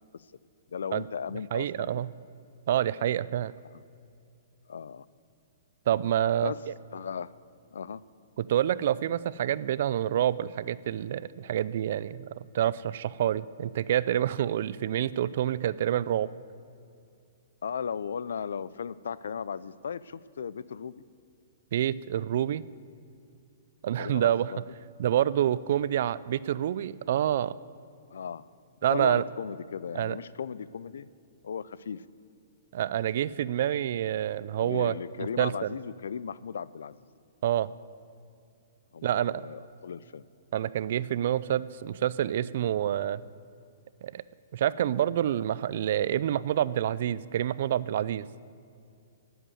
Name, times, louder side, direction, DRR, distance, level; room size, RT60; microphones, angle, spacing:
voice 1, 0.7-2.0 3.7-3.8 4.7-5.1 6.4-6.6 6.9-7.3 7.7-8.0 17.6-21.0 24.0-24.6 28.1-28.5 28.9-31.1 31.4-32.0 34.6-37.0 38.9-40.2, left 7 dB, 80° left, 19 dB, 0.4 m, -36 dB
voice 2, 1.5-2.1 2.7-3.5 5.9-6.5 8.4-12.3 12.5-16.3 21.7-22.7 23.8-24.5 25.0-27.5 28.8-29.2 29.9-30.2 32.7-35.7 37.4-37.7 39.0-39.4 40.5-43.2 44.0-44.2 44.5-48.3, right 11 dB, 60° right, 18 dB, 0.4 m, -27 dB
11.0 x 8.0 x 9.0 m, 2.5 s
hypercardioid pair, 145°, 0 cm